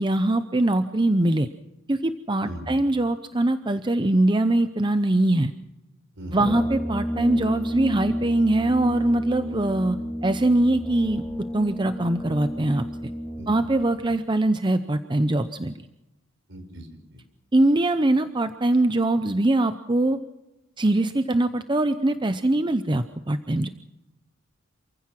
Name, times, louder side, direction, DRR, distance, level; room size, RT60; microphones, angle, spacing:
voice 1, 0.0-1.5 1.9-5.5 6.3-10.0 10.2-11.2 11.5-12.9 13.5-15.7 17.5-20.2 20.8-23.7, right 1 dB, 20° right, 10 dB, 0.7 m, -22 dB
voice 2, 2.4-2.8 6.2-6.5 13.4-13.5 16.5-17.2, equal, 60° right, 7 dB, 4.9 m, -39 dB
Brass instrument, 6.4-13.9, equal, 10° left, 1.9 m, -30 dB
28.0 x 15.5 x 5.9 m, 1.0 s
head